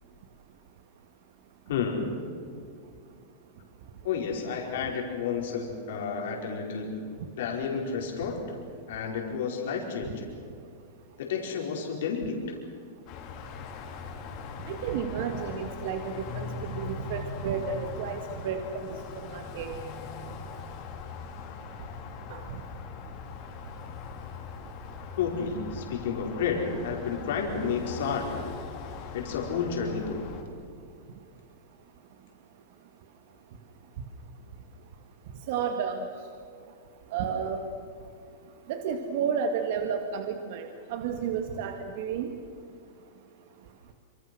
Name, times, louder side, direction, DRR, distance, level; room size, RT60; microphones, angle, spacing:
voice 1, 1.7-2.1 4.0-7.1 7.4-8.6 8.9-10.3 11.2-12.5 25.2-28.5 29.1-30.3, left 6 dB, 70° left, 0 dB, 4.9 m, -31 dB
sound 1, 13.1-30.4, left 5 dB, 45° left, 3.9 m, -40 dB
voice 2, 14.7-19.8 22.3-22.6 35.5-36.1 37.1-37.6 38.7-42.3, right 6 dB, 60° right, 6 dB, 2.0 m, -32 dB
26.5 x 26.0 x 6.3 m, 2.3 s
hypercardioid pair, 120°, 0 cm